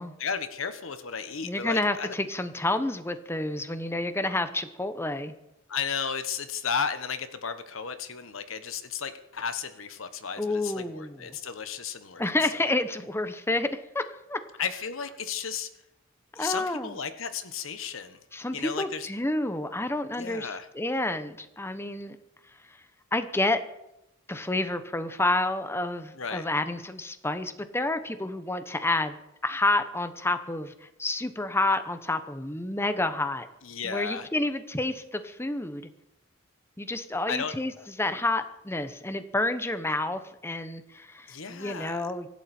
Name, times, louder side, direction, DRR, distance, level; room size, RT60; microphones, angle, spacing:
voice 1, 0.2-2.1 5.7-12.2 12.5-12.7 14.6-15.7 16.3-18.2 18.5-19.1 20.1-20.7 26.2-26.5 33.6-34.3 37.3-37.5 41.3-42.1, left 6 dB, 80° left, 10 dB, 1.2 m, -34 dB
voice 2, 1.4-5.3 10.4-11.4 12.2-14.0 14.3-14.4 16.3-16.9 18.3-22.2 23.1-23.6 24.3-29.2 29.4-33.5 33.8-35.9 36.8-37.7 38.0-42.3, left 2 dB, 10° left, 10 dB, 0.9 m, -29 dB
25.0 x 11.5 x 4.4 m, 0.86 s
head